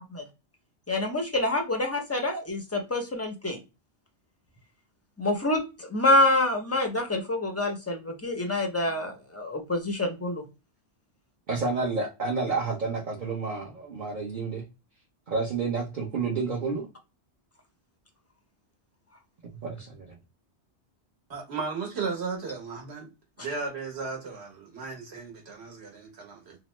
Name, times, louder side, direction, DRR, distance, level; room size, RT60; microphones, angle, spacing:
voice 1, 0.9-3.6 5.2-10.4, left 2 dB, 20° left, 0.4 m, -26 dB
voice 2, 11.5-14.6 15.3-16.8 19.6-20.1, right 4 dB, 50° right, 0.8 m, -30 dB
voice 3, 21.3-23.1 23.4-26.6, right 4 dB, 70° right, 1.3 m, -35 dB
2.9 x 2.1 x 3.1 m
omnidirectional pair, 1.2 m